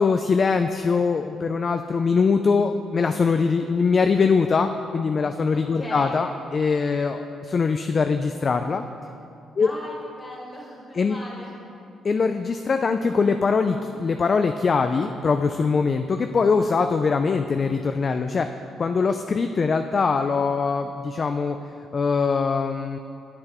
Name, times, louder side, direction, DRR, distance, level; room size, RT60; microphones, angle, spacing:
voice 1, 0.0-8.8 9.6-9.7 10.9-11.2 12.0-18.5 18.8-21.6 21.9-23.0, left 5 dB, 40° left, 7 dB, 0.3 m, -22 dB
voice 2, 5.5-6.2 9.5-11.5, left 1 dB, 25° left, -3 dB, 1.9 m, -38 dB
9.6 x 7.9 x 3.0 m, 2.6 s
cardioid pair, 90°, 0 cm